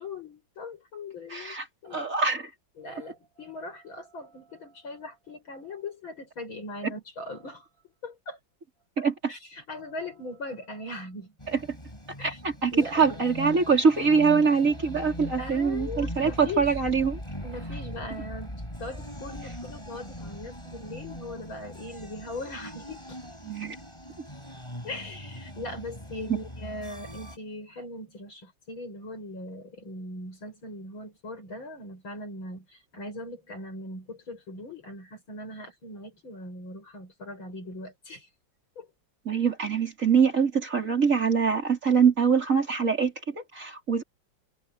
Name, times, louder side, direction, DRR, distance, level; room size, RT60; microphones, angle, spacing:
voice 1, 0.0-1.6 1.8-2.1 2.8-7.7 8.0-8.4 9.0-11.4 12.2-12.4 12.7-13.2 15.4-16.7 17.4-23.2 24.8-38.3 38.8-38.9, left 2 dB, 80° left, 7.6 m, -40 dB
voice 2, 1.3-1.6 1.9-2.5 6.8-6.9 9.0-9.3 12.2-17.2 23.4-23.8 39.3-44.0, right 5 dB, 40° right, 4.1 m, -24 dB
sound 1, 11.4-27.4, equal, 15° left, 7.9 m, -40 dB
omnidirectional pair, 2.2 m